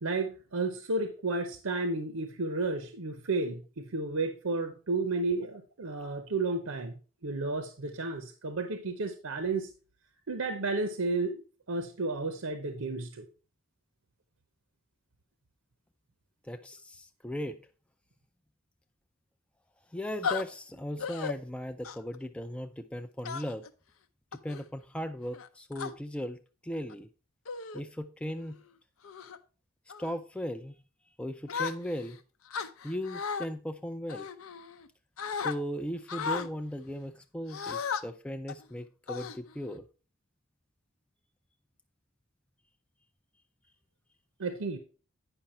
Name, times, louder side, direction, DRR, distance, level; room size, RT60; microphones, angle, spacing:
voice 1, 0.0-6.9 7.2-9.7 10.3-11.4 11.7-13.3 44.4-44.8, right 3 dB, 80° right, 8 dB, 0.8 m, -32 dB
voice 2, 16.4-17.7 19.9-23.6 24.3-27.1 27.7-28.6 30.0-30.8 31.2-32.2 32.8-34.3 35.4-39.9, equal, 5° left, 7 dB, 0.3 m, -37 dB
sound 1, 20.2-20.4 21.0-21.3 21.8-22.2 23.2-23.7 24.3-24.6 25.3-25.9 26.7-26.9 27.5-27.8 28.3-28.6 29.0-29.4 29.9-30.2 31.5-32.1 32.5-33.5 34.1-34.9 35.2-35.6 36.1-36.5 37.5-38.0 38.5-38.6 39.1-39.8, left 6 dB, 75° left, 0.6 m, -35 dB
9.0 x 5.6 x 4.2 m, 0.36 s
head